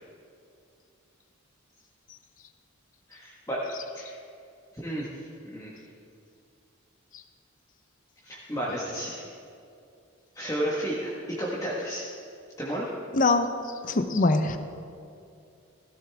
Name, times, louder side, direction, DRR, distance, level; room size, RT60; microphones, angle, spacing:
voice 1, 3.1-3.6 3.9-4.2 4.7-5.7 8.2-9.2 10.3-12.1 12.6-12.9, equal, 15° left, -6 dB, 1.4 m, -32 dB
voice 2, 13.1-13.5 13.8-14.6, left 3 dB, 40° left, 8 dB, 0.7 m, -23 dB
15.5 x 13.0 x 3.5 m, 2.5 s
head